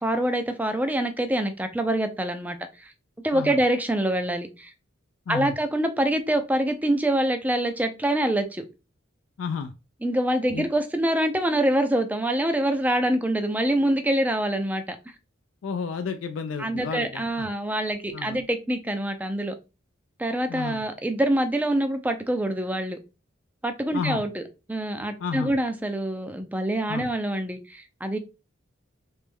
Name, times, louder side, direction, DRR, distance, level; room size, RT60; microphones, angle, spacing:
voice 1, 0.0-2.9 3.2-4.7 5.3-8.6 10.0-15.0 16.6-19.6 20.2-23.0 23.6-24.4 24.7-28.2, right 1 dB, 10° right, 0.4 m, -25 dB
voice 2, 9.4-9.7 10.5-10.7 15.6-17.5 18.1-18.4 20.5-20.8 23.9-24.2 25.2-25.5 26.9-27.1, left 5 dB, 70° left, 0.3 m, -31 dB
3.3 x 3.0 x 3.4 m
head